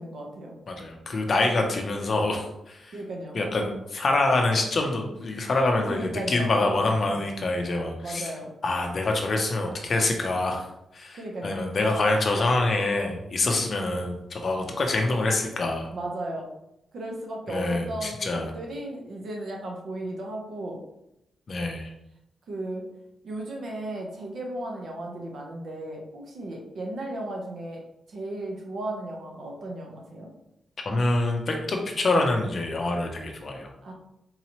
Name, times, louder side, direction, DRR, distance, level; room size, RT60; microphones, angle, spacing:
voice 1, 0.0-0.5 2.9-3.4 5.9-7.2 8.0-8.5 11.1-11.6 15.9-16.5 16.9-20.8 22.5-22.8 23.2-27.8 28.1-30.3 33.8-33.9, right 1 dB, 55° right, 0 dB, 0.8 m, -35 dB
voice 2, 0.7-3.0 3.3-8.3 8.6-10.7 10.9-15.9 17.5-18.5 21.5-21.9 30.8-33.7, left 2 dB, 40° left, 2 dB, 0.5 m, -26 dB
3.9 x 2.9 x 2.9 m, 0.84 s
wide cardioid pair, 175°, 0 cm